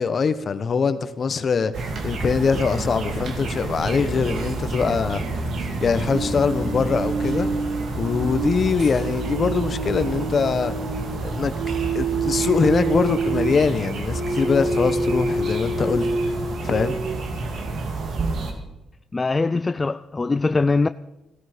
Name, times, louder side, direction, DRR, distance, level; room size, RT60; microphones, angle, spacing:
voice 1, 0.0-5.3 5.8-7.5 7.9-10.8 11.2-11.5 11.9-16.3 16.6-17.0, left 5 dB, 45° left, 1.1 m, -23 dB
sound 1, 1.7-18.5, right 3 dB, 65° right, 2.6 m, -29 dB
panflute scale octave and a half, 6.1-11.1 11.5-13.6 14.1-16.4 16.6-17.1, right 3 dB, 80° right, 3.8 m, -27 dB
voice 2, 19.1-20.9, left 3 dB, 25° left, 0.4 m, -22 dB
16.0 x 13.0 x 5.1 m
cardioid pair, 90°, 0 cm